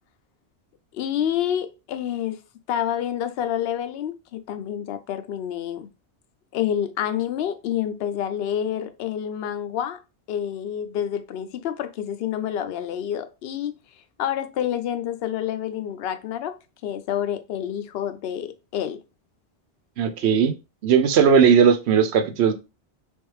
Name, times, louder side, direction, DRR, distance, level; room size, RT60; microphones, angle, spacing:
voice 1, 0.9-2.4 2.7-5.9 6.5-10.0 10.3-13.7 14.2-16.6 16.8-19.0, left 10 dB, 70° left, 0.8 m, -28 dB
voice 2, 20.0-20.5 20.8-22.5, right 7 dB, 85° right, 0.9 m, -17 dB
3.5 x 3.3 x 3.1 m
omnidirectional pair, 1.1 m